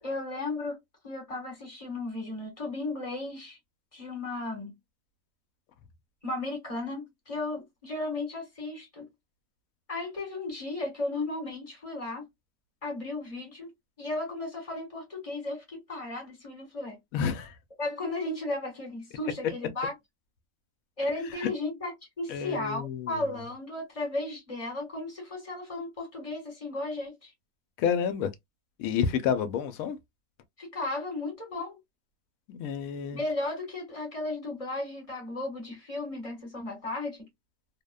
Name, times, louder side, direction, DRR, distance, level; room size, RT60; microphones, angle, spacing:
voice 1, 0.0-0.8 1.0-3.6 3.9-4.7 6.2-9.1 9.9-12.2 12.8-13.7 14.0-17.0 17.8-19.9 21.0-27.3 30.6-31.8 33.1-37.3, left 2 dB, 25° left, 1.3 m, -35 dB
voice 2, 17.1-17.6 21.4-21.5 22.3-23.2 27.8-28.3 28.8-30.0 32.5-33.2, left 7 dB, 70° left, 1.0 m, -29 dB
2.7 x 2.1 x 2.2 m
omnidirectional pair, 1.6 m